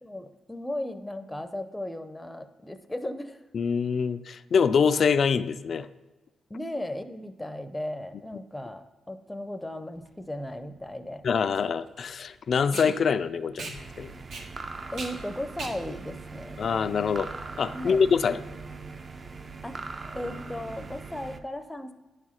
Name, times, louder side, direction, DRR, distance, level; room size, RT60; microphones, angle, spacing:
voice 1, 0.0-3.4 6.5-11.2 14.9-16.6 17.7-18.0 19.6-19.8 20.1-21.9, left 1 dB, 10° left, 0.6 m, -36 dB
voice 2, 3.5-5.9 11.2-14.1 16.6-17.3 17.6-18.4, left 6 dB, 55° left, 0.3 m, -25 dB
Packing tape duct tape, 10.0-17.4, right 3 dB, 80° right, 1.5 m, -42 dB
sound 1, 13.7-21.4, right 4 dB, 40° right, 0.6 m, -41 dB
9.8 x 4.8 x 5.6 m
cardioid pair, 90°, 0 cm